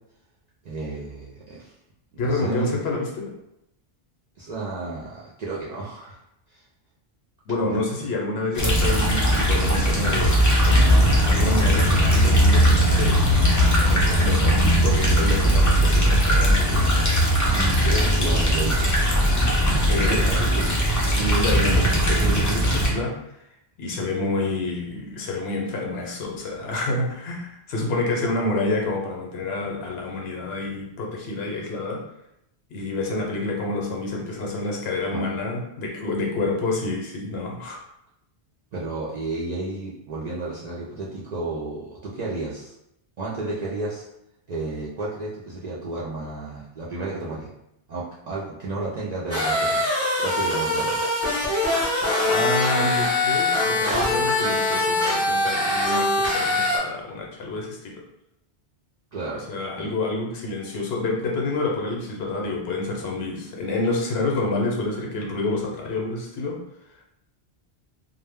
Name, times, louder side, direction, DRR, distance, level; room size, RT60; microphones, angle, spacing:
voice 1, 0.6-1.7 2.1-2.8 4.4-6.2 6.5-6.6 7.7-8.1 17.5-19.1 19.9-20.7 35.1-35.2 38.7-42.7 43.2-44.0 44.5-47.5 47.9-49.8 50.2-51.0 59.1-59.4 59.8-59.9, right 2 dB, 60° right, -7 dB, 0.4 m, -32 dB
voice 2, 2.2-3.3 7.5-13.3 13.9-16.9 19.8-20.5 21.1-23.2 23.8-32.0 32.7-37.8 52.3-58.1 59.3-66.6, left 2 dB, 70° left, 0 dB, 0.8 m, -28 dB
sound 1, 8.5-22.9, equal, 30° left, 0.3 m, -19 dB
sound 2, 49.3-56.8, left 2 dB, 15° right, 0.8 m, -23 dB
2.1 x 2.0 x 3.3 m, 0.81 s
omnidirectional pair, 1.1 m